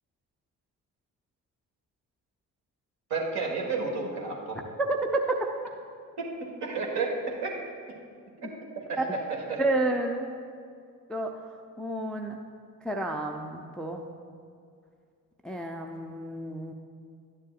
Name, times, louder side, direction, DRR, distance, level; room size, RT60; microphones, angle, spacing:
voice 1, 3.1-4.6 6.2-7.5 8.4-8.5 8.9-9.2 9.5-9.6, right 4 dB, 55° right, -1 dB, 1.6 m, -31 dB
voice 2, 9.6-10.4 11.1-11.3 11.8-12.3 12.8-14.0 15.4-16.7, right 2 dB, ahead, 3 dB, 0.5 m, -30 dB
12.0 x 9.8 x 2.4 m, 2.2 s
figure-of-eight pair, 40°, 48 cm